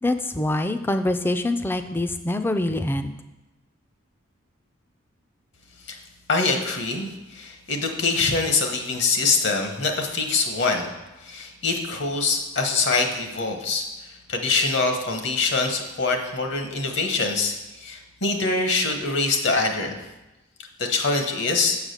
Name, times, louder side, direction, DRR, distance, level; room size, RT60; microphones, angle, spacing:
voice 1, 0.0-3.1, left 1 dB, 10° left, 8 dB, 0.3 m, -25 dB
voice 2, 6.3-10.9 11.2-20.0 20.8-21.8, left 3 dB, 60° left, 4 dB, 1.0 m, -24 dB
7.3 x 4.8 x 6.5 m, 1.0 s
head